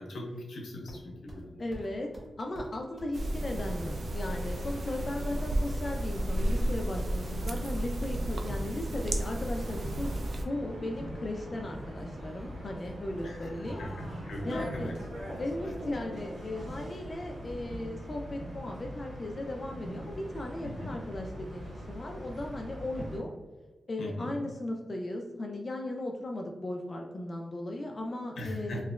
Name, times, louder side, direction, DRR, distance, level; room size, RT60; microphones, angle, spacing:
voice 1, 0.0-1.6 13.2-14.9 20.6-21.0 24.0-24.3 28.4-28.8, left 1 dB, 90° left, 0 dB, 0.7 m, -39 dB
sound 1, 0.9-1.4 1.7-1.9 2.1-2.3 2.5-2.7 3.0-3.1 3.4-4.7 5.0-5.5 5.8-6.3 6.6-7.9, right 1 dB, 10° right, 1.0 m, -46 dB
voice 2, 1.6-2.1 2.4-13.8 14.4-14.9 15.4-23.3 23.9-28.8, left 1 dB, 40° left, 1 dB, 0.3 m, -37 dB
sound 2, 3.1-10.4, right 1 dB, 65° right, 0.4 m, -33 dB
sound 3, 3.5-23.2, equal, 90° right, 1.0 m, -42 dB
3.1 x 2.8 x 2.3 m, 1.2 s
wide cardioid pair, 90°, 0 cm